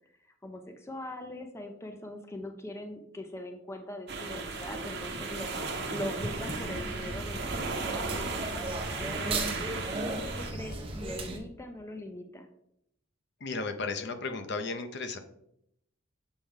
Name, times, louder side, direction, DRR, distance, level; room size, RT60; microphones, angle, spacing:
voice 1, 0.4-5.5 5.9-9.7 10.1-12.5, left 1 dB, 15° left, 5 dB, 0.5 m, -42 dB
sound 1, 4.1-10.5, right 3 dB, 55° right, 1.0 m, -36 dB
sound 2, 6.1-11.4, right 2 dB, 30° right, 1.0 m, -36 dB
voice 2, 13.4-15.2, left 3 dB, 55° left, 8 dB, 0.7 m, -34 dB
7.1 x 4.5 x 3.6 m, 0.76 s
head